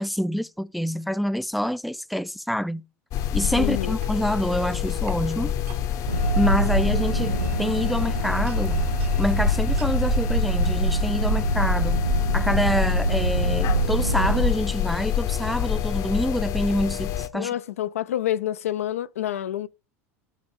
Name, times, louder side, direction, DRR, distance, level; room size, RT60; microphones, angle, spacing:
voice 1, 0.0-2.8 3.3-5.5 6.4-8.8 9.2-12.0 12.3-17.5, equal, ahead, 0.3 m, -26 dB
sound 1, 3.1-17.3, left 10 dB, 45° left, 0.8 m, -27 dB
voice 2, 3.6-4.0 17.3-19.7, left 12 dB, 70° left, 0.4 m, -28 dB
sound 2, 3.8-5.2 5.7-5.9 6.5-6.7 7.1-8.0 8.5-9.2 9.8-9.9 10.6-10.8, right 10 dB, 60° right, 1.0 m, -47 dB
sound 3, 6.1-14.5, right 3 dB, 85° right, 0.5 m, -25 dB
7.3 x 4.4 x 5.2 m
figure-of-eight pair, 75°, 8 cm